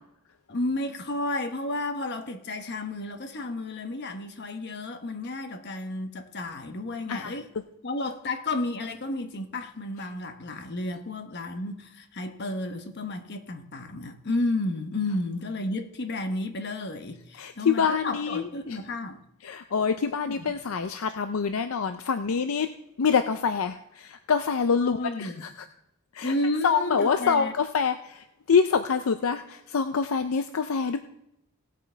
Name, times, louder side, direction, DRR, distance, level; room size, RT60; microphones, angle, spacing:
voice 1, 0.5-7.5 7.8-19.2 20.3-20.5 24.8-25.4 26.2-27.5, left 2 dB, 55° left, 1.1 m, -32 dB
voice 2, 17.4-18.5 19.4-22.7 23.0-25.5 26.1-26.3 26.6-31.0, left 6 dB, 75° left, 0.5 m, -26 dB
18.0 x 8.4 x 3.4 m
head